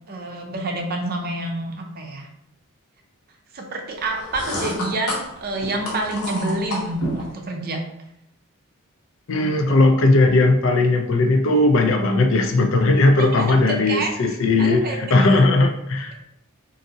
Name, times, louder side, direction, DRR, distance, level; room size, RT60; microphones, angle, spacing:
voice 1, 0.1-2.3 3.5-7.8 13.2-14.1 14.6-15.4, right 2 dB, 45° right, 2 dB, 0.6 m, -28 dB
sound 1, 4.0-7.3, left 1 dB, 80° left, 1.1 m, -30 dB
voice 2, 9.3-16.3, left 2 dB, 60° left, 5 dB, 0.4 m, -18 dB
3.8 x 2.6 x 2.7 m, 0.76 s
head